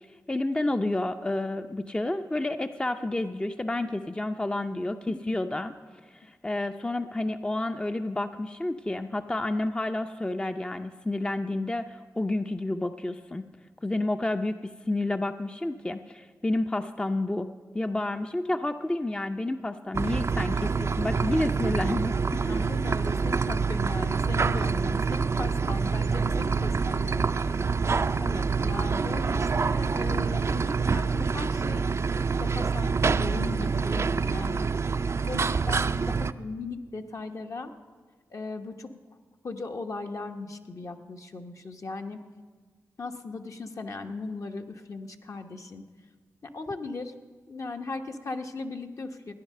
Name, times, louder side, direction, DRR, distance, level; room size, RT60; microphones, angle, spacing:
voice 1, 0.3-5.7 6.1-13.4 13.8-17.5 17.7-22.6, left 2 dB, 15° left, 8 dB, 0.5 m, -30 dB
sound 1, 19.9-36.3, right 5 dB, 45° right, 0.4 m, -26 dB
voice 2, 22.4-27.6 28.2-31.9 32.2-34.7 35.3-37.7 38.3-38.9 39.4-42.2 43.0-45.8 46.5-47.1 47.5-49.3, left 3 dB, 55° left, 4 dB, 1.0 m, -38 dB
14.5 x 10.0 x 6.6 m, 1.4 s
cardioid pair, 55°, 7 cm